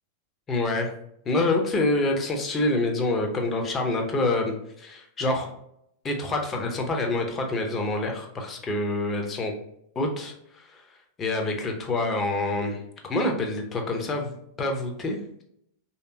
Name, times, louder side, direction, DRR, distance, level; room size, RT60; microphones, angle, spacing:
voice 1, 0.5-0.9 1.3-5.5 6.0-9.5 10.0-10.8 11.2-15.4, left 2 dB, 25° left, 3 dB, 0.7 m, -27 dB
3.2 x 2.9 x 2.7 m, 0.73 s
figure-of-eight pair, 90°, 0 cm